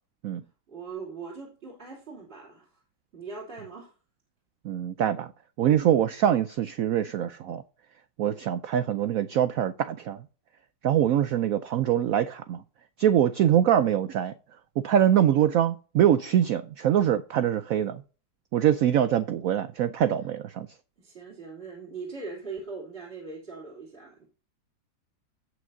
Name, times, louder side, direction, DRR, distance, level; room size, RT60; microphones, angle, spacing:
voice 1, 0.7-2.8 3.1-3.9 21.0-24.2, right 4 dB, 30° right, 3.3 m, -40 dB
voice 2, 4.6-5.3 5.6-7.6 8.2-10.2 10.8-12.6 13.0-14.3 14.8-18.0 18.5-20.7, right 10 dB, 90° right, 0.7 m, -24 dB
17.0 x 6.1 x 2.7 m
omnidirectional pair, 2.1 m